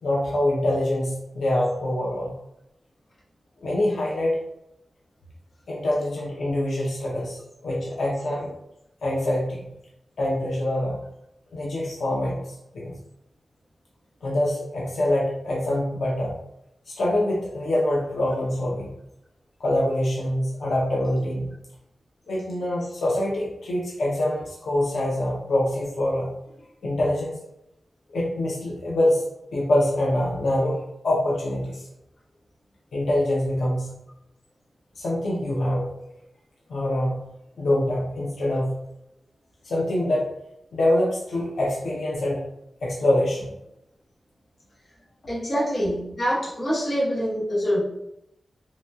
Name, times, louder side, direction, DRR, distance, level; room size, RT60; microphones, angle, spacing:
voice 1, 0.0-2.3 3.6-4.4 5.7-8.5 9.0-9.7 10.2-11.0 11.5-12.4 12.7-12.9 14.2-16.4 16.9-18.9 19.6-21.5 22.3-26.3 26.8-27.4 28.1-29.2 29.5-31.9 32.9-33.9 35.0-35.9 36.7-37.3 37.6-38.8 39.6-40.3 40.7-42.4 42.8-43.5, left 1 dB, 90° left, -4 dB, 0.6 m, -25 dB
voice 2, 45.3-47.8, equal, 45° left, -7 dB, 1.0 m, -25 dB
2.9 x 2.8 x 2.2 m, 0.83 s
wide cardioid pair, 140°, 0 cm